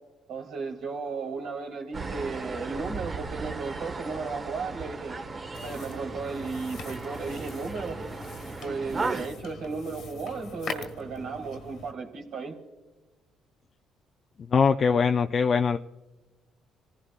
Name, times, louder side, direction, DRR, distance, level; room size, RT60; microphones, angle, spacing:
voice 1, 0.3-5.2 5.6-8.0 8.4-12.5, right 4 dB, 75° right, 1 dB, 2.7 m, -35 dB
sound 1, 1.9-9.3, right 4 dB, 40° right, 1.3 m, -36 dB
sound 2, 5.5-11.9, left 4 dB, 70° left, 1.6 m, -42 dB
voice 2, 14.5-15.8, left 5 dB, 50° left, 5 dB, 0.5 m, -22 dB
26.5 x 15.5 x 2.4 m, 1.1 s
supercardioid pair, 65°, 0 cm